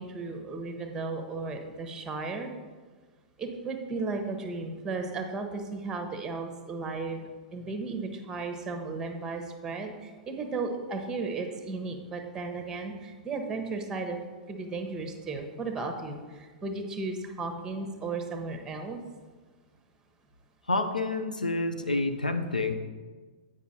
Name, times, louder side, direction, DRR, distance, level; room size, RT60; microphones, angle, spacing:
voice 1, 0.0-2.5 3.4-7.2 7.5-14.2 14.5-19.0, right 3 dB, 15° right, 5 dB, 1.0 m, -35 dB
voice 2, 20.7-22.7, left 2 dB, 85° left, 7 dB, 0.7 m, -28 dB
8.3 x 5.2 x 4.2 m, 1.4 s
figure-of-eight pair, 100°, 4 cm